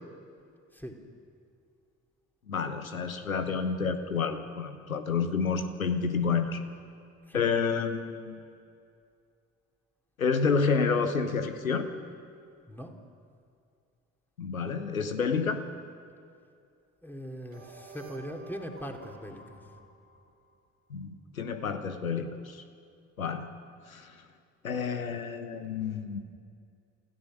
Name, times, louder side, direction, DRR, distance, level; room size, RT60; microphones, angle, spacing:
voice 1, 2.5-6.6 7.3-8.4 10.2-11.9 14.4-15.6 20.9-22.6 23.2-23.5 23.9-24.1 24.6-26.2, left 5 dB, 85° left, 9 dB, 1.0 m, -29 dB
voice 2, 17.0-19.6, equal, 5° left, 2 dB, 2.9 m, -41 dB
sound 1, 17.5-20.6, right 3 dB, 80° right, 2.1 m, -49 dB
29.0 x 16.5 x 6.3 m, 2.4 s
figure-of-eight pair, 45°, 40 cm